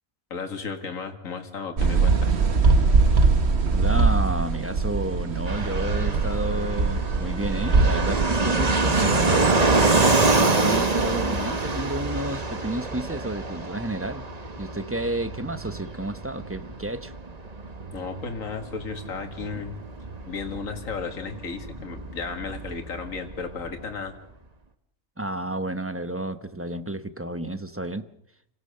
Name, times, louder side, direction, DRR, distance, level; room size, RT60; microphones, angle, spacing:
voice 1, 0.3-2.3 17.9-19.8 20.3-24.1, left 5 dB, 70° left, 5 dB, 2.3 m, -34 dB
sound 1, 1.8-8.3, right 4 dB, 50° right, 1.5 m, -21 dB
voice 2, 3.7-9.6 10.3-14.3 14.6-17.1 25.2-28.0, right 1 dB, 10° right, 11 dB, 0.8 m, -31 dB
Fixed-wing aircraft airplane, 5.5-23.8, right 3 dB, 30° right, 1.4 m, -26 dB
29.0 x 17.0 x 6.7 m, 0.76 s
omnidirectional pair, 1.4 m